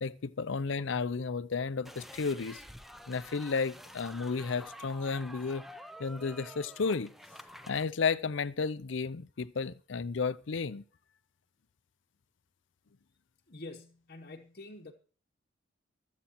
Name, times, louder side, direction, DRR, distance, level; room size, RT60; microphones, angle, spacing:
voice 1, 0.0-2.6 3.1-5.6 6.0-7.1 7.7-10.8, left 5 dB, 65° left, 0.5 m, -33 dB
sound 1, 1.8-7.8, equal, ahead, 0.6 m, -49 dB
voice 2, 13.5-14.9, left 2 dB, 45° left, 1.0 m, -46 dB
24.5 x 8.3 x 3.0 m
head